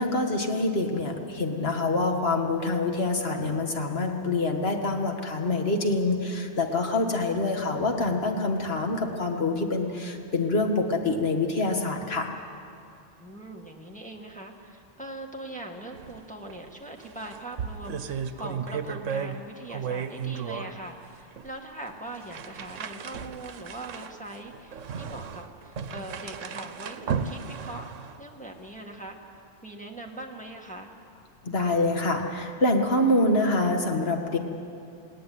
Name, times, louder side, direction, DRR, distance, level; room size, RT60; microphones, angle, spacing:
voice 1, 0.0-12.3 31.4-34.4, left 2 dB, 55° left, 3 dB, 2.1 m, -26 dB
voice 2, 13.2-27.9 28.2-29.2 29.6-30.9, right 1 dB, 5° left, 0 dB, 1.7 m, -41 dB
sound 1, 15.9-16.2 16.5-16.6 17.0-19.4 19.7-20.7 21.4-21.5 22.2-28.2, right 6 dB, 85° right, 1.2 m, -34 dB
19.5 x 18.0 x 9.4 m, 2.5 s
omnidirectional pair, 1.3 m